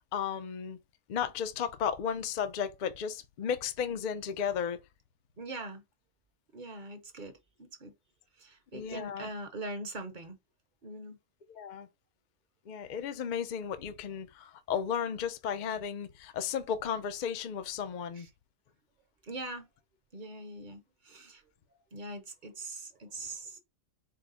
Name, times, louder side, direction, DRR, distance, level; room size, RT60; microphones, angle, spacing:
voice 1, 0.1-0.8 1.1-4.8 8.7-9.3 11.5-11.9 12.7-18.3, left 7 dB, 60° left, 0.5 m, -34 dB
voice 2, 5.4-5.8 6.5-7.3 7.6-7.9 8.4-10.4 10.8-11.2 18.1-18.3 19.2-19.7 20.1-21.4 21.9-23.6, right 2 dB, 40° right, 0.8 m, -42 dB
4.8 x 2.0 x 3.7 m
omnidirectional pair, 1.4 m